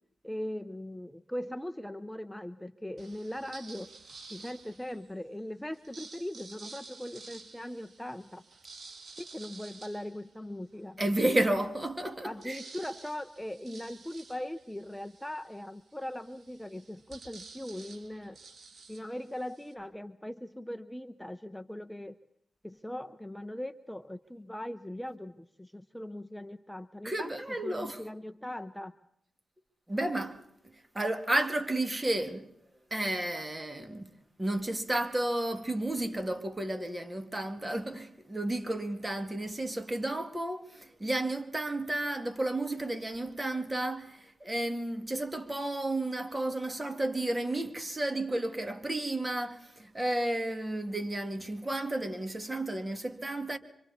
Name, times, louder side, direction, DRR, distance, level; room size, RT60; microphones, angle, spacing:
voice 1, 0.2-3.9 4.3-8.4 9.2-11.0 12.2-18.4 18.9-22.2 22.6-27.3 27.6-28.9, left 1 dB, 5° left, 0.8 m, -40 dB
sound 1, 3.0-5.1 5.7-10.9 11.4-11.5 11.7-19.7, right 3 dB, 60° right, 3.0 m, -51 dB
voice 2, 11.0-12.6 27.0-28.0 29.9-30.4 30.9-32.5 32.9-34.1 34.4-53.6, right 1 dB, 25° right, 2.3 m, -32 dB
26.0 x 25.5 x 4.2 m
cardioid pair, 55°, 0 cm